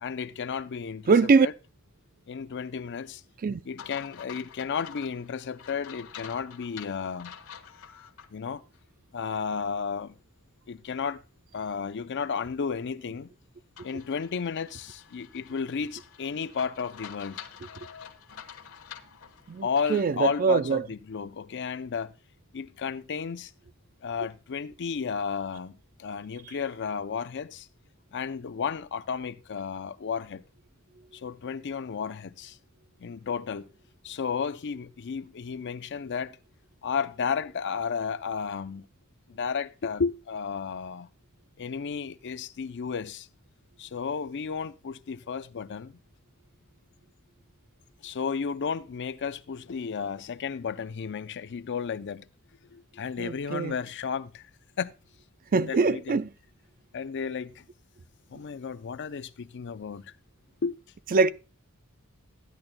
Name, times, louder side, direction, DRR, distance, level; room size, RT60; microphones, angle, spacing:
voice 1, 0.0-1.1 1.4-1.5 2.3-3.2 3.7-7.3 8.3-8.6 9.1-10.1 10.7-11.2 11.5-13.3 13.8-17.4 19.6-22.1 22.5-23.5 24.0-27.7 28.1-30.4 31.1-32.6 33.0-33.7 34.0-36.4 36.8-38.9 39.3-41.1 41.6-43.3 43.8-46.0 48.0-52.3 52.7-54.4 54.8-54.9 55.5-56.2 56.9-57.7 58.3-60.1 60.6-60.8, left 6 dB, 55° left, 0.5 m, -33 dB
voice 2, 1.1-1.5 3.4-3.6 19.5-20.9 53.2-53.7 55.5-56.3 61.1-61.3, right 4 dB, 40° right, 0.4 m, -23 dB
sound 1, 3.8-8.3 8.7-8.8 13.8-20.1, left 8 dB, 85° left, 1.2 m, -47 dB
14.0 x 10.5 x 2.2 m
head